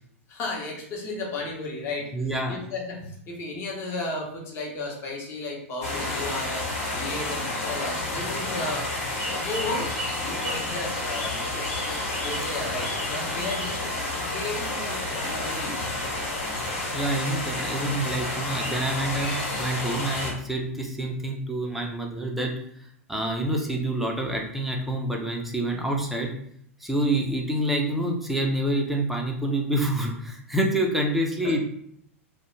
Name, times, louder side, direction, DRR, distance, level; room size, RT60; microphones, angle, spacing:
voice 1, 0.3-2.1 2.5-8.9 9.4-9.9 10.2-11.8 12.2-15.8 16.9-17.0 31.4-31.6, left 2 dB, 35° left, -1 dB, 0.8 m, -34 dB
voice 2, 2.1-2.6 8.2-8.3 16.9-22.5 23.1-26.3 26.8-31.6, right 1 dB, ahead, 0 dB, 0.5 m, -27 dB
sound 1, 5.8-20.3, left 2 dB, 65° left, 0.8 m, -30 dB
2.1 x 2.1 x 3.1 m, 0.69 s
hypercardioid pair, 100°, 8 cm